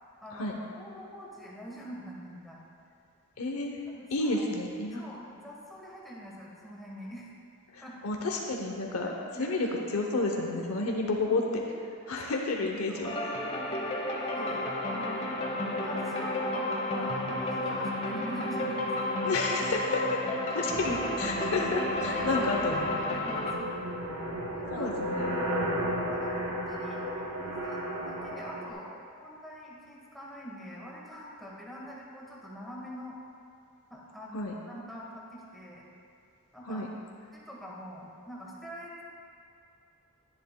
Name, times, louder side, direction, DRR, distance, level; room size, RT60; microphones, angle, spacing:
voice 1, 0.2-2.6 3.9-4.5 5.0-7.3 7.8-7.9 9.3-9.5 12.6-13.1 14.2-14.6 14.8-15.3 15.8-19.8 20.6-21.0 21.8-23.7 24.5-24.9 25.7-27.0 27.4-27.8 28.1-28.9 29.2-33.2 33.9-35.8 36.5-36.8 37.5-39.0, equal, ahead, -4 dB, 1.2 m, -44 dB
voice 2, 3.4-3.8 4.1-5.0 7.7-9.1 9.4-11.6 12.1-13.3 14.4-14.6 19.2-20.0 20.5-22.9 24.7-25.4 34.3-34.5 36.6-36.9, left 2 dB, 80° left, 1 dB, 0.7 m, -31 dB
sound 1, 13.0-23.5, left 1 dB, 25° left, 0.9 m, -32 dB
sound 2, 20.7-28.7, equal, 85° right, 2.1 m, -34 dB
10.5 x 10.0 x 2.2 m, 2.5 s
head